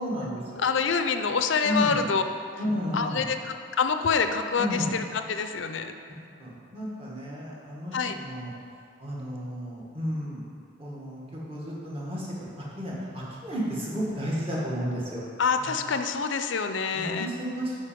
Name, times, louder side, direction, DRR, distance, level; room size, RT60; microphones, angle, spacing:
voice 1, 0.0-0.7 1.6-2.0 2.6-3.3 4.6-4.9 6.4-8.5 9.0-10.4 10.8-12.5 12.8-15.2 15.6-15.8 16.9-17.8, equal, 30° right, -5 dB, 1.6 m, -32 dB
voice 2, 0.6-2.2 2.9-5.9 7.9-8.2 15.4-17.3, left 5 dB, 75° left, 8 dB, 0.5 m, -26 dB
8.4 x 5.2 x 5.1 m, 2.4 s
head